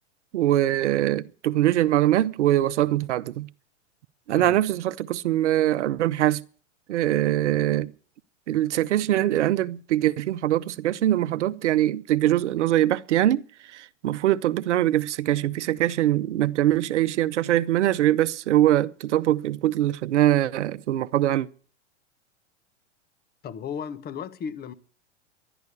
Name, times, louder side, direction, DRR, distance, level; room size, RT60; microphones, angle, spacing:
voice 1, 0.3-3.5 4.3-6.4 6.9-7.9 8.5-13.4 13.7-21.5, right 13 dB, 70° right, 0.9 m, -23 dB
voice 2, 23.4-24.7, left 7 dB, 25° left, 1.2 m, -35 dB
12.0 x 10.5 x 8.3 m
hypercardioid pair, 110°, 36 cm